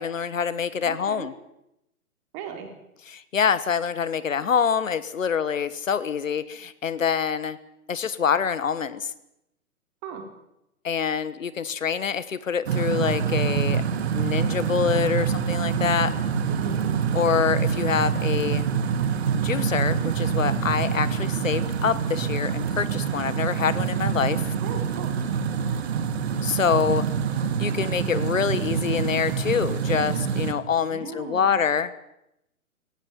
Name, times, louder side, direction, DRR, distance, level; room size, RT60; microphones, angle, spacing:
voice 1, 0.0-1.3 3.1-7.6 7.9-9.1 10.8-13.8 14.1-16.1 17.1-18.7 19.4-24.4 26.4-27.0 27.6-31.9, left 7 dB, 60° left, 16 dB, 1.3 m, -25 dB
voice 2, 0.8-1.3 2.3-2.7 10.0-10.2 16.5-16.9 24.6-25.1 30.9-31.6, right 6 dB, 25° right, 4 dB, 4.2 m, -37 dB
sound 1, 12.7-30.5, right 7 dB, 45° right, 2.1 m, -26 dB
17.5 x 17.0 x 9.5 m, 0.83 s
figure-of-eight pair, 125°, 44 cm